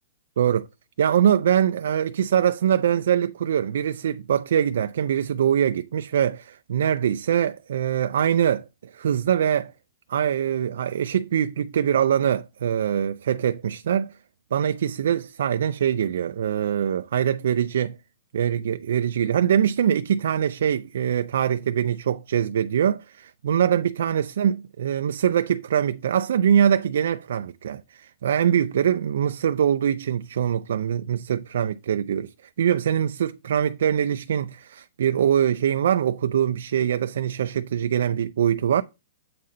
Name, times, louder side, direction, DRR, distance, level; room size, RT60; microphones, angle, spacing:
voice 1, 0.4-0.7 1.0-9.7 10.1-14.2 14.5-18.0 18.3-38.8, right 9 dB, 70° right, 0.3 m, -23 dB
7.6 x 3.9 x 4.2 m
hypercardioid pair, 145°, 0 cm